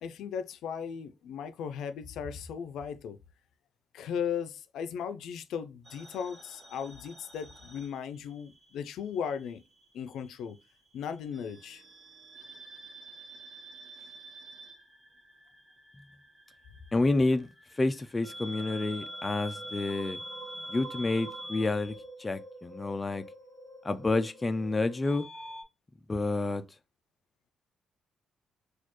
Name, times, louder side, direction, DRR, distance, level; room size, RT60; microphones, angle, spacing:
voice 1, 0.0-3.2 3.9-9.6 9.9-10.6 10.9-11.8, left 7 dB, 85° left, 0.4 m, -37 dB
sound 1, 5.9-8.7 9.0-10.1 11.3-25.6, right 1 dB, 30° right, 1.2 m, -46 dB
voice 2, 16.9-17.5 17.8-20.2 20.7-23.2 23.8-25.3 26.1-26.6, left 2 dB, 15° left, 0.3 m, -29 dB
4.2 x 2.3 x 3.0 m
cardioid pair, 150°, 0 cm